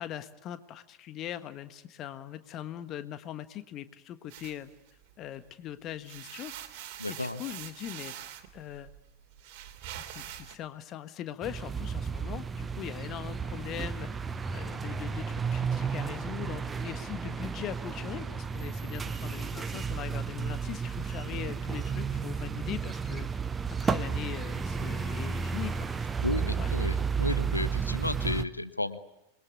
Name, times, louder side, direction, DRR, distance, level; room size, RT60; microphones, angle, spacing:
voice 1, 0.0-4.7 5.2-6.5 7.1-8.1 8.5-8.9 10.0-14.1 14.5-23.3 23.8-26.1 26.4-26.7, left 11 dB, 35° left, 12 dB, 1.5 m, -41 dB
sound 1, 4.3-5.5 5.9-10.6, right 11 dB, 45° right, 3.0 m, -44 dB
voice 2, 7.0-7.4 26.2-29.0, left 2 dB, 85° left, 12 dB, 1.2 m, -33 dB
sound 2, 11.4-28.4, right 6 dB, 15° right, 1.1 m, -32 dB
27.5 x 22.0 x 8.6 m, 0.90 s
figure-of-eight pair, 90°, 0 cm